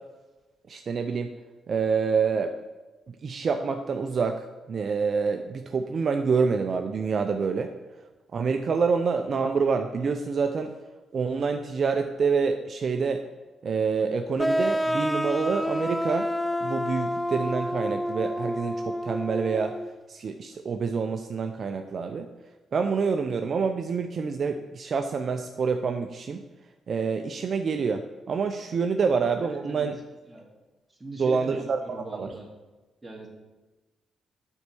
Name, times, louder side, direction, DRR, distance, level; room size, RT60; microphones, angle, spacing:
voice 1, 0.7-1.3 1.7-2.5 3.2-7.7 8.3-10.7 11.1-13.2 13.6-16.3 16.6-19.8 20.1-22.3 22.7-26.4 26.9-30.0 31.2-31.8 32.1-32.3, right 5 dB, 50° right, 6 dB, 0.5 m, -27 dB
sound 1, 14.4-19.9, equal, 5° left, 0.4 m, -28 dB
voice 2, 29.4-29.9 30.3-30.5 30.9-32.5 33.0-33.3, right 2 dB, 15° right, -1 dB, 2.2 m, -40 dB
8.2 x 4.6 x 6.9 m, 1.2 s
cardioid pair, 90°, 0 cm